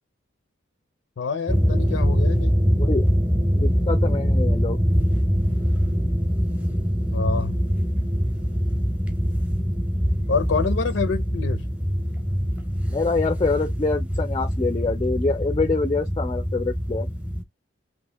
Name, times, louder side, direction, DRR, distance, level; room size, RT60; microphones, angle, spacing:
voice 1, 1.2-2.6 7.1-7.6 10.3-11.6, left 5 dB, 80° left, 0.5 m, -26 dB
sound 1, 1.5-17.4, equal, 10° right, 0.6 m, -23 dB
voice 2, 3.5-4.8 12.9-17.1, left 3 dB, 25° left, 0.4 m, -25 dB
2.7 x 2.5 x 3.3 m
head